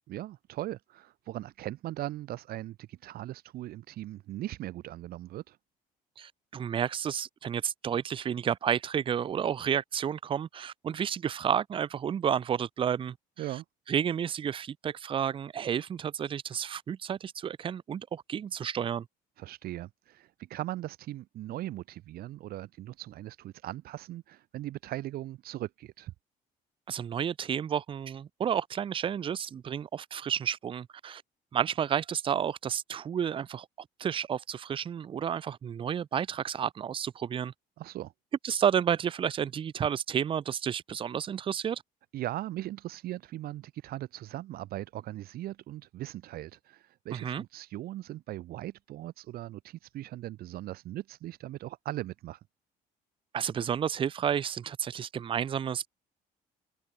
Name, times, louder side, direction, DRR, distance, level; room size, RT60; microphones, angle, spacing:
voice 1, 0.1-5.6 13.4-13.6 19.4-26.1 37.8-38.1 42.1-52.4, right 15 dB, 70° right, 2.1 m, -39 dB
voice 2, 6.2-13.1 13.9-19.1 26.9-31.2 31.5-33.7 34.0-37.5 38.4-41.8 47.1-47.4 53.3-55.9, right 8 dB, 35° right, 0.5 m, -31 dB
cardioid pair, 115°, 16 cm